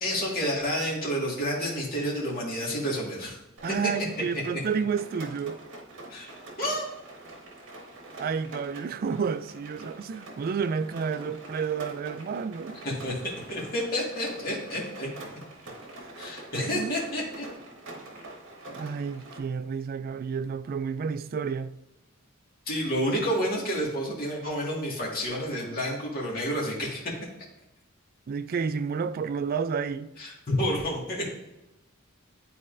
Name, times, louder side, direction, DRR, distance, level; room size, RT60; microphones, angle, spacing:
voice 1, 0.0-3.4 6.1-6.3 6.6-6.9 12.8-15.1 16.2-17.5 22.7-27.1 30.2-31.3, equal, 45° left, 1.8 m, -29 dB
voice 2, 3.6-5.6 8.2-12.8 16.0-16.1 16.6-16.9 18.7-21.7 28.3-30.1, right 6 dB, 45° right, 0.3 m, -30 dB
Rain, 3.6-19.4, right 2 dB, 65° right, 1.4 m, -45 dB
10.5 x 4.2 x 2.6 m
head